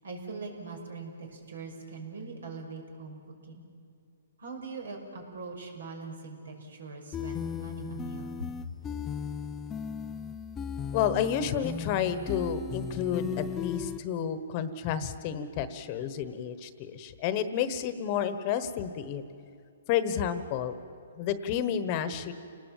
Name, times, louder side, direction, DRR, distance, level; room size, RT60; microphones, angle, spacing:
voice 1, 0.0-3.6 4.4-8.5, right 3 dB, 80° right, 3 dB, 5.7 m, -41 dB
sound 1, 7.1-14.0, left 7 dB, 15° left, 0.5 m, -36 dB
voice 2, 10.9-19.2 19.9-20.7 21.2-22.3, left 8 dB, 30° left, 12 dB, 1.2 m, -30 dB
29.5 x 19.5 x 7.5 m, 2.3 s
hypercardioid pair, 155°, 0 cm